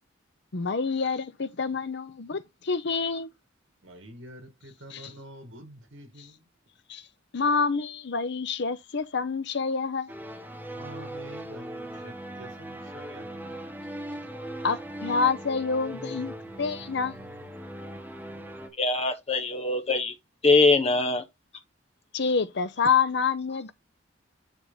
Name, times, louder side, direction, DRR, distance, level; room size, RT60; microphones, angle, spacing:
voice 1, 0.5-3.3 4.9-5.1 6.2-6.3 6.9-7.0 7.3-10.1 14.6-17.2 22.1-23.7, left 5 dB, 65° left, 0.8 m, -27 dB
voice 2, 3.8-6.3 10.8-13.5, right 1 dB, 75° right, 2.4 m, -46 dB
sound 1, 10.1-18.7, right 1 dB, 10° right, 1.5 m, -39 dB
voice 3, 18.8-20.1 20.4-21.2, left 3 dB, 35° left, 1.2 m, -22 dB
10.0 x 3.6 x 3.9 m
head